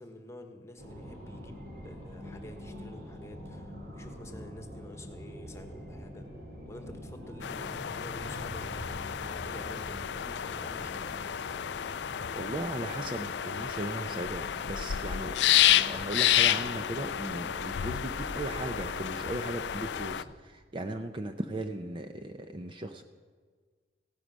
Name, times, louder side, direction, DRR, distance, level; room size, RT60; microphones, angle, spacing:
voice 1, 0.0-1.5 1.8-6.3 6.7-11.3, left 1 dB, 15° left, 5 dB, 1.3 m, -49 dB
sound 1, 0.8-20.3, equal, 60° right, 3.4 m, -45 dB
sound 2, 7.4-20.2, left 11 dB, 80° left, 0.4 m, -30 dB
voice 2, 12.3-15.5 15.7-23.0, right 1 dB, 30° right, 7 dB, 0.6 m, -37 dB
16.0 x 9.8 x 6.3 m, 1.5 s
head